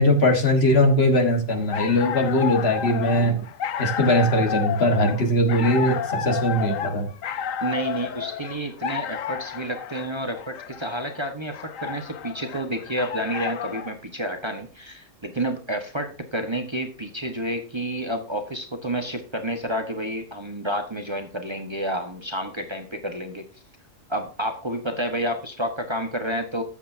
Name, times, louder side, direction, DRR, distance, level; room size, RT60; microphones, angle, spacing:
voice 1, 0.0-3.4 3.8-7.1, left 1 dB, 55° left, 4 dB, 1.8 m, -20 dB
sound 1, 1.5-13.9, left 8 dB, 85° left, 1.1 m, -31 dB
voice 2, 7.6-23.4 24.1-26.6, right 1 dB, 20° right, 4 dB, 1.2 m, -30 dB
13.5 x 8.1 x 2.7 m, 0.36 s
omnidirectional pair, 1.3 m